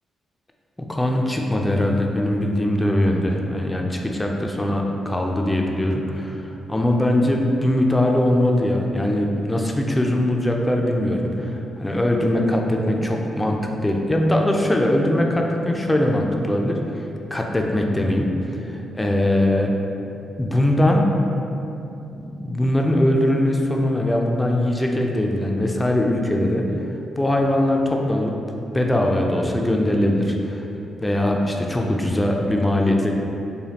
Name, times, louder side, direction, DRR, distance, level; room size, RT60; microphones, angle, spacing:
voice 1, 0.8-16.8 17.3-18.3 18.6-19.7 20.4-21.1 22.1-26.6 27.2-28.4 28.7-30.7 31.0-33.1, left 1 dB, 15° left, 1 dB, 0.4 m, -21 dB
5.0 x 2.3 x 2.8 m, 2.8 s
supercardioid pair, 50°, 0 cm